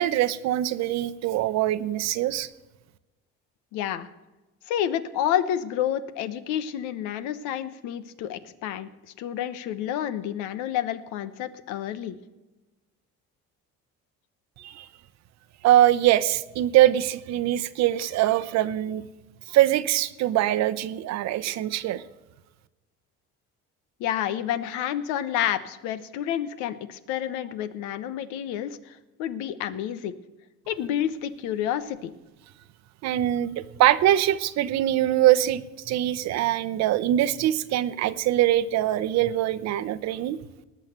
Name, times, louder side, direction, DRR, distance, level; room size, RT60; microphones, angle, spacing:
voice 1, 0.0-2.5 14.6-14.9 15.6-19.0 19.5-22.0 33.0-40.4, right 13 dB, 65° right, 13 dB, 0.8 m, -23 dB
voice 2, 3.7-4.1 4.7-8.9 9.2-12.2 24.0-30.1 30.7-32.1, left 10 dB, 90° left, 14 dB, 1.1 m, -29 dB
19.0 x 6.5 x 6.6 m, 1.1 s
cardioid pair, 115°, 29 cm